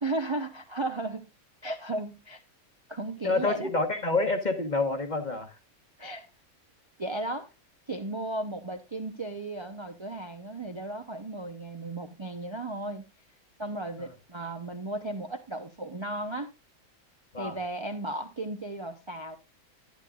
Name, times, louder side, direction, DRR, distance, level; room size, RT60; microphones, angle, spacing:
voice 1, 0.0-1.2 1.6-2.4 2.9-3.7 6.0-6.3 7.0-7.5 7.9-13.0 13.6-16.5 17.4-19.4, right 2 dB, 25° right, 0.7 m, -35 dB
voice 2, 3.2-5.6 14.0-14.1 17.3-17.6, left 3 dB, 35° left, 1.4 m, -28 dB
11.5 x 11.0 x 2.4 m
omnidirectional pair, 1.5 m